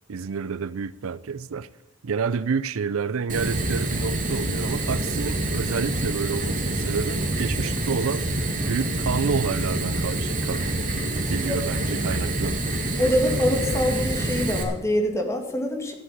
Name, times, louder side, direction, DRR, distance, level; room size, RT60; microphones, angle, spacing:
voice 1, 0.1-1.7 2.0-10.6 11.3-12.5, right 5 dB, 75° right, 0.5 m, -29 dB
Fire, 3.3-14.6, right 2 dB, 40° right, 2.3 m, -26 dB
voice 2, 13.0-15.9, left 1 dB, 15° left, 2.2 m, -24 dB
13.0 x 7.5 x 8.6 m
head